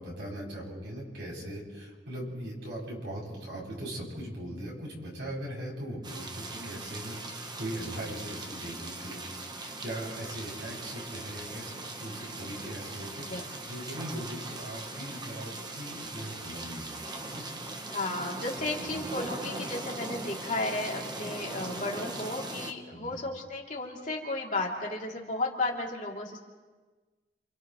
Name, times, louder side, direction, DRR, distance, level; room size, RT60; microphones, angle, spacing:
voice 1, 0.0-9.5 9.8-17.0 17.3-17.4 18.6-18.9 22.9-23.2, right 1 dB, 75° right, -4 dB, 7.7 m, -40 dB
sound 1, 6.0-22.7, right 2 dB, 25° right, 1.1 m, -40 dB
voice 2, 17.9-26.4, left 2 dB, 45° left, -2 dB, 3.0 m, -34 dB
29.5 x 28.5 x 3.2 m, 1.3 s
head